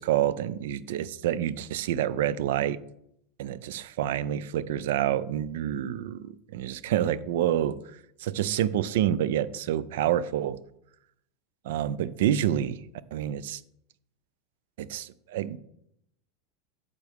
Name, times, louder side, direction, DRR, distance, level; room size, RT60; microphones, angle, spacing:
voice 1, 0.0-2.8 3.4-7.8 8.2-10.6 11.6-12.8 13.1-13.6 14.8-15.6, right 11 dB, 75° right, 18 dB, 0.5 m, -28 dB
9.1 x 6.7 x 3.6 m, 0.76 s
hypercardioid pair, 110°, 0 cm